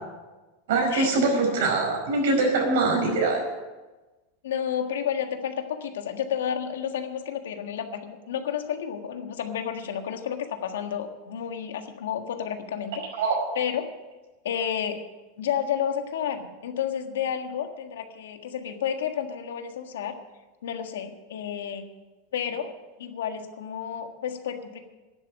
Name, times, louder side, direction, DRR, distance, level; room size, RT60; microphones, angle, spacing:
voice 1, 0.7-3.4 13.2-13.3, right 3 dB, 75° right, 1 dB, 5.3 m, -23 dB
voice 2, 4.4-13.2 13.5-13.8 14.4-15.0 15.4-20.1 20.6-21.8 22.3-22.7 23.0-24.8, left 8 dB, 90° left, 6 dB, 1.5 m, -31 dB
11.0 x 7.7 x 9.9 m, 1.2 s
supercardioid pair, 130°, 0 cm